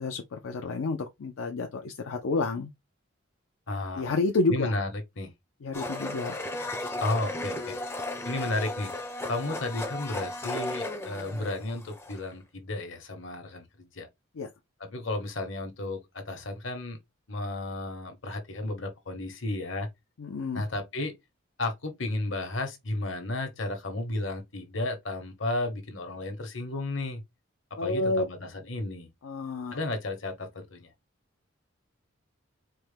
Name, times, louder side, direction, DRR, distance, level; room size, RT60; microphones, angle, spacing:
voice 1, 0.0-2.7 3.9-4.7 5.6-6.4 14.4-14.5 20.2-20.6 27.8-28.2 29.2-29.8, left 3 dB, 90° left, 0.5 m, -29 dB
voice 2, 3.7-4.1 4.5-5.3 7.0-7.8 8.2-8.9 9.3-14.1 14.8-17.0 17.3-19.9 20.5-21.1 21.6-27.2 27.8-29.1 29.7-30.9, left 2 dB, 70° left, 1.1 m, -33 dB
Domestic sounds home sounds, 5.7-12.3, left 2 dB, 10° left, 0.4 m, -35 dB
4.3 x 2.1 x 3.3 m
head